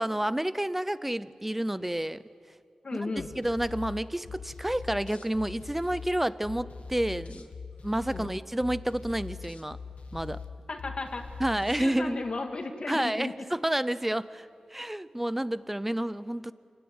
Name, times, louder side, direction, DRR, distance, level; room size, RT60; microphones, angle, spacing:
voice 1, 0.0-2.2 2.9-3.1 3.4-7.5 7.8-9.8 10.1-10.4 11.4-12.2 12.9-16.5, right 1 dB, 10° right, 15 dB, 0.6 m, -30 dB
voice 2, 2.8-3.3 8.1-8.3 10.7-11.2 11.8-13.4, left 3 dB, 50° left, 4 dB, 1.9 m, -35 dB
sound 1, 3.2-11.9, left 5 dB, 85° left, 1.5 m, -42 dB
27.5 x 16.5 x 9.6 m, 2.4 s
wide cardioid pair, 125°, 2 cm